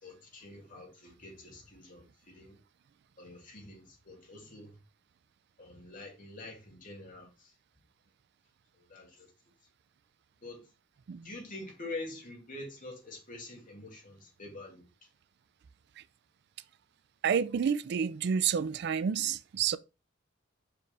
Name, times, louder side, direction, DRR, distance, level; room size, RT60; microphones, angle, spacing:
voice 1, 0.0-2.6 3.2-4.8 5.6-7.5 8.8-9.3 10.4-10.7 11.2-14.9, left 2 dB, 45° left, 2.3 m, -46 dB
voice 2, 17.2-19.8, right 7 dB, 60° right, 0.4 m, -29 dB
6.1 x 4.9 x 3.3 m
head